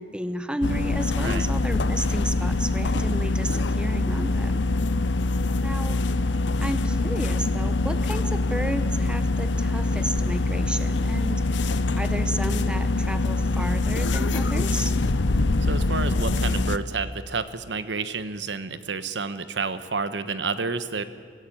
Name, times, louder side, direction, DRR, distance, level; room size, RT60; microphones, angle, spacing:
voice 1, 0.0-4.7 5.6-6.0 6.6-11.7 12.0-15.0, right 1 dB, 5° right, 10 dB, 1.0 m, -32 dB
sound 1, 0.6-16.8, left 2 dB, 90° left, 0.8 m, -24 dB
voice 2, 15.6-21.0, right 4 dB, 75° right, 13 dB, 1.1 m, -30 dB
24.5 x 16.0 x 8.6 m, 2.2 s
head